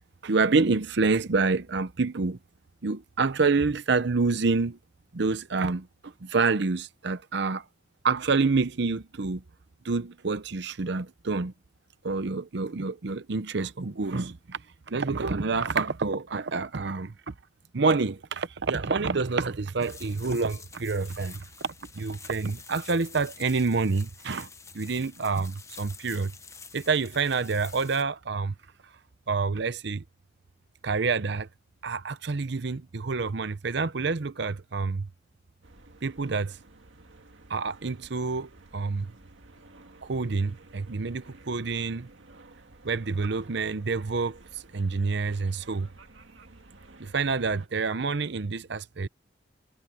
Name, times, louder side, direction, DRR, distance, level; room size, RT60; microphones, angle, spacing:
voice 1, 0.2-2.4 2.8-4.8 5.1-7.6 8.0-9.4 9.8-11.5 12.0-14.6 14.9-17.3 17.7-24.5 24.7-26.3 26.7-28.5 29.3-30.0 30.8-31.5 31.8-35.1 36.0-36.6 37.5-39.1 40.0-42.1 42.8-45.9 47.0-49.1, right 4 dB, 60° right, 0.7 m, -27 dB
sound 1, 19.8-28.0, left 5 dB, 15° left, 0.9 m, -48 dB
sound 2, 35.6-47.7, right 2 dB, 75° right, 1.9 m, -53 dB
head